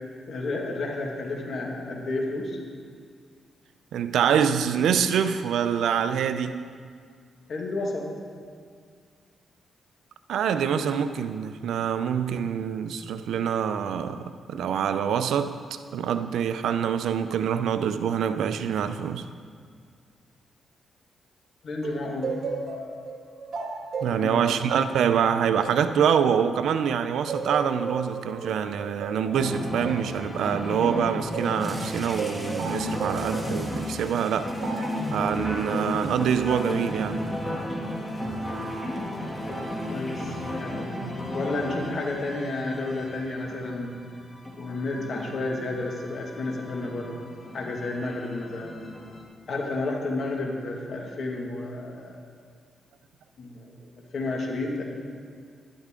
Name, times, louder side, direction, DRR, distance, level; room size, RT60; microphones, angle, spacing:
voice 1, 0.3-2.6 7.5-8.1 21.6-22.4 24.1-24.6 39.9-41.0 41.3-43.9 44.6-47.2 47.5-48.7 49.5-52.2 53.4-53.9 54.1-54.8, left 2 dB, 60° left, 2.0 m, -31 dB
voice 2, 3.9-6.6 10.3-19.3 24.0-34.6 35.1-37.3, right 8 dB, 85° right, 0.5 m, -25 dB
sound 1, 21.8-26.8 27.3-31.6 32.2-33.6 34.6-35.1, right 4 dB, 65° right, 1.9 m, -35 dB
sound 2, 29.3-49.2, left 1 dB, 15° left, 2.4 m, -34 dB
sound 3, 31.3-40.8, right 1 dB, 20° right, 1.5 m, -48 dB
12.0 x 11.5 x 3.8 m
cardioid pair, 75°, 0 cm